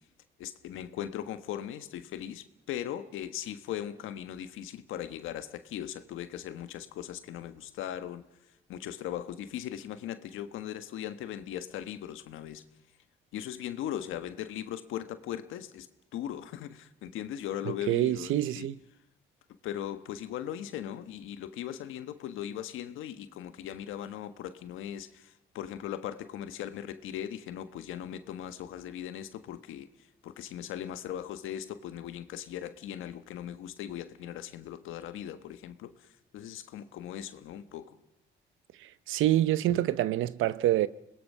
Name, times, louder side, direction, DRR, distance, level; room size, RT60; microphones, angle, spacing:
voice 1, 0.4-8.2 8.7-12.6 13.3-15.9 16.1-18.7 19.6-29.9 30.2-35.9 36.3-38.0, left 11 dB, 90° left, 1.4 m, -39 dB
voice 2, 17.7-18.8 38.8-40.9, right 13 dB, 85° right, 0.8 m, -27 dB
26.5 x 20.5 x 5.6 m
cardioid pair, 90°, 20 cm